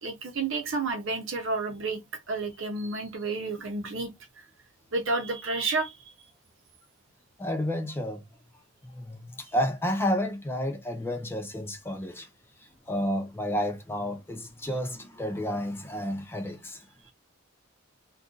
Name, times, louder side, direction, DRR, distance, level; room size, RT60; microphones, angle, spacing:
voice 1, 0.0-2.0 2.3-4.1 4.4-4.5 4.9-6.1, right 3 dB, 60° right, 0.7 m, -30 dB
voice 2, 7.4-8.2 8.8-12.3 12.6-16.8, equal, 10° left, 0.4 m, -31 dB
2.6 x 2.3 x 3.7 m
head